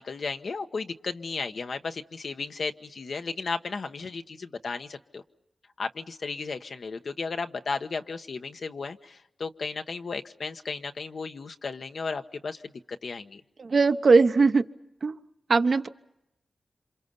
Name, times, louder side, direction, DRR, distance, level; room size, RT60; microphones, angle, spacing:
voice 1, 0.0-5.2 5.8-13.4, left 4 dB, 75° left, 7 dB, 1.1 m, -34 dB
voice 2, 13.6-14.6 15.0-15.2 15.5-15.9, right 4 dB, 65° right, 8 dB, 1.0 m, -20 dB
28.0 x 27.0 x 5.5 m, 0.86 s
cardioid pair, 60°, 0 cm